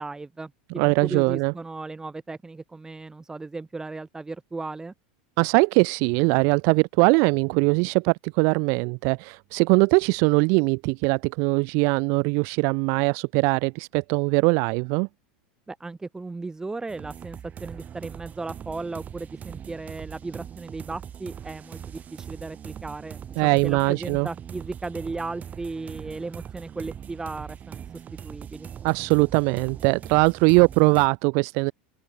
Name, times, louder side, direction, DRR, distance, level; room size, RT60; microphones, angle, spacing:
voice 1, 0.0-4.9 15.7-28.7, right 3 dB, 10° right, 5.4 m, -36 dB
voice 2, 0.8-1.5 5.4-15.1 23.4-24.3 28.8-31.7, right 34 dB, 60° right, 1.3 m, -21 dB
sound 1, 16.9-31.1, right 8 dB, 30° right, 4.2 m, -41 dB
open air
hypercardioid pair, 105°, 5 cm